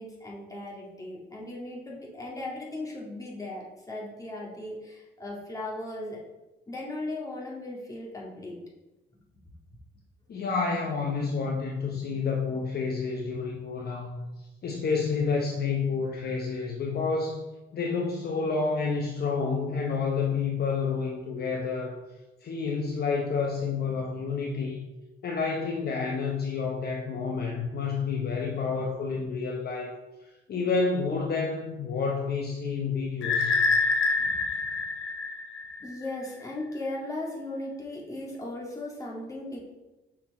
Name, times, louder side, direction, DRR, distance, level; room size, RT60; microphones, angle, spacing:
voice 1, 0.0-6.2 6.7-8.6 34.2-34.7 35.8-39.6, left 2 dB, 15° left, -4 dB, 1.9 m, -37 dB
voice 2, 10.3-14.2 14.6-17.5 17.7-22.0 22.4-24.9 25.2-29.9 30.5-33.6, left 4 dB, 55° left, 0 dB, 0.8 m, -29 dB
sound 1, 33.2-36.1, left 4 dB, 80° left, 1.0 m, -26 dB
5.9 x 4.4 x 4.1 m, 1.1 s
cardioid pair, 90°, 20 cm